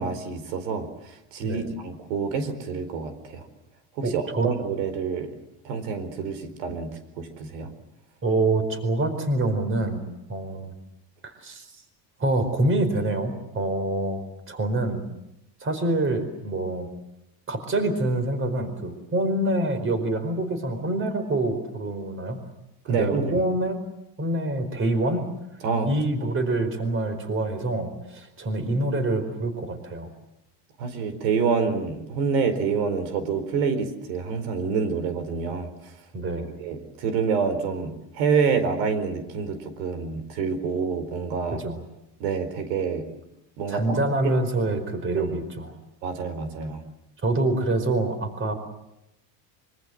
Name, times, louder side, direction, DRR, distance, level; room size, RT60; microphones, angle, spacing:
voice 1, 0.0-3.5 4.0-5.4 5.6-6.9 7.2-7.7 22.9-23.4 25.6-25.9 30.8-35.9 36.6-41.6 42.2-43.1 43.6-44.0 44.7-44.8 45.2-45.3 46.0-46.8, right 5 dB, 85° right, 10 dB, 4.6 m, -27 dB
voice 2, 4.0-4.5 8.2-10.0 10.3-10.7 11.2-11.6 12.2-14.2 14.5-15.0 15.6-16.9 17.5-22.4 22.8-23.8 24.2-25.3 25.9-30.1 36.1-36.5 41.5-41.8 43.7-45.7 47.2-48.5, right 2 dB, 25° right, 10 dB, 4.6 m, -26 dB
25.0 x 24.0 x 7.7 m, 0.88 s
cardioid pair, 145°, 48 cm